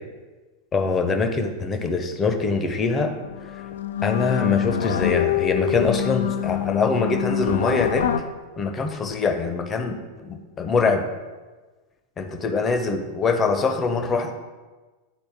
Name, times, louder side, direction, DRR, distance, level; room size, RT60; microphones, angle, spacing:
voice 1, 0.7-3.1 4.0-8.1 8.6-11.1 12.2-14.3, left 4 dB, 20° left, 6 dB, 0.7 m, -23 dB
sound 1, 2.8-2.9 3.2-8.2, left 11 dB, 65° left, 0.4 m, -25 dB
9.3 x 4.1 x 3.5 m, 1.3 s
figure-of-eight pair, 90°, 0 cm